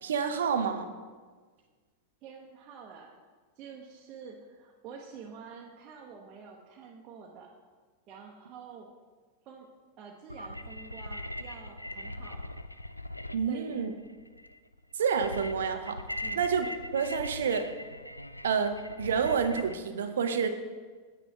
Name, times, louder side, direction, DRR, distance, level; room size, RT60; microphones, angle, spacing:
voice 1, 0.0-0.9 13.3-13.9 14.9-16.0 16.4-17.7 18.4-20.5, right 6 dB, 65° right, 8 dB, 0.6 m, -29 dB
voice 2, 2.2-3.2 3.6-7.5 8.1-8.9 9.4-9.7 10.0-12.4 13.5-13.8 16.2-16.5, right 6 dB, 35° right, -2 dB, 0.9 m, -48 dB
sound 1, 10.3-19.8, left 1 dB, 90° left, 0.3 m, -41 dB
8.8 x 8.8 x 3.3 m, 1.5 s
figure-of-eight pair, 90°, 0 cm